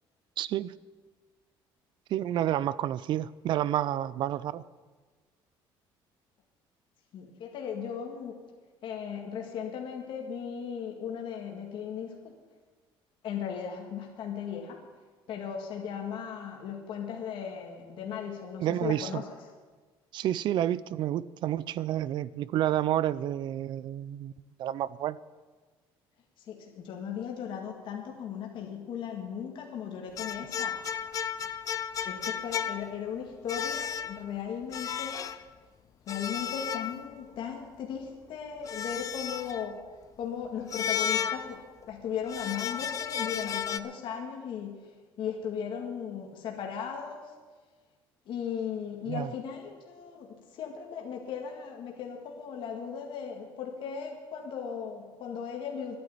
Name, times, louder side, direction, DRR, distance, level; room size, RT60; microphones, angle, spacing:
voice 1, 0.4-0.7 2.1-4.6 18.6-19.2 20.1-24.3 24.6-25.2 49.1-49.3, right 12 dB, 55° right, 19 dB, 0.4 m, -29 dB
voice 2, 7.1-8.4 8.8-12.2 13.2-14.8 15.3-19.3 26.5-30.8 32.0-35.1 36.1-39.8 40.2-41.6 41.9-44.8 45.2-47.3 48.3-50.3 50.5-56.0, left 7 dB, 60° left, 1 dB, 1.9 m, -37 dB
sound 1, 30.2-33.1 33.5-34.3 34.7-35.4 36.1-37.3 38.6-39.7 40.7-41.8 42.3-43.8, left 8 dB, 35° left, 0.5 m, -33 dB
11.0 x 9.6 x 8.9 m, 1.4 s
cardioid pair, 140°, 10 cm